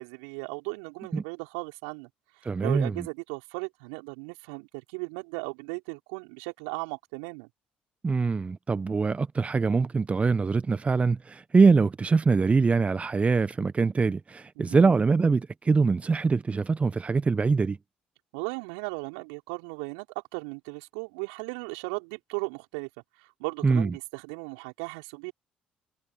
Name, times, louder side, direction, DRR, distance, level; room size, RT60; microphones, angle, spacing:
voice 1, 0.0-2.1 2.4-7.5 14.6-14.9 18.3-20.1 20.3-22.9 23.2-25.3, right 36 dB, 75° right, 5.2 m, -36 dB
voice 2, 2.4-2.9 8.0-17.8 23.6-23.9, right 4 dB, 30° right, 1.2 m, -23 dB
figure-of-eight pair, 50°, 4 cm